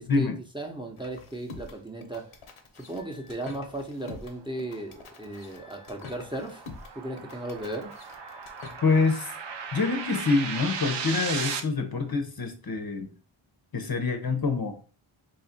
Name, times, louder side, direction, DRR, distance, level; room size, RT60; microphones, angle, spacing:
voice 1, 0.5-2.4 2.7-6.6 7.0-7.9, right 1 dB, 10° right, 2 dB, 0.7 m, -36 dB
sound 1, 1.0-9.2, left 4 dB, 80° left, 0.8 m, -46 dB
sound 2, 4.7-11.6, right 6 dB, 60° right, 0.6 m, -37 dB
voice 2, 8.8-9.3 9.7-13.1 13.7-14.7, left 4 dB, 45° left, 5 dB, 0.7 m, -26 dB
3.1 x 2.5 x 4.2 m, 0.38 s
cardioid pair, 45°, 50 cm